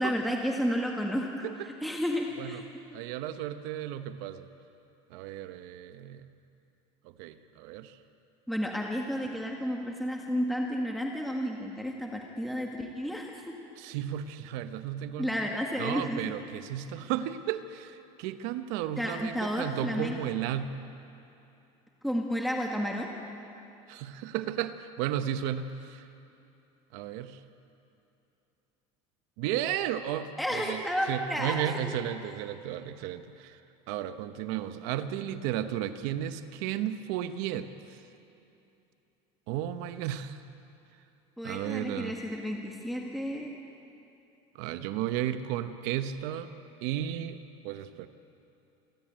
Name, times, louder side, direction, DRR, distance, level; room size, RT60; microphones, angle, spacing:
voice 1, 0.0-2.6 8.5-13.3 15.2-16.2 19.0-20.2 22.0-23.1 30.4-31.9 41.4-43.5, equal, ahead, 0 dB, 1.8 m, -31 dB
voice 2, 2.9-4.5 5.1-6.2 7.2-7.9 13.8-15.3 15.8-20.8 23.9-26.0 26.9-27.4 29.4-30.8 31.1-33.6 33.9-38.0 39.5-40.4 41.4-42.1 44.5-46.5 46.8-47.4 47.6-48.1, right 11 dB, 70° right, 10 dB, 1.0 m, -34 dB
27.5 x 12.0 x 8.9 m, 2.8 s
cardioid pair, 140°, 15 cm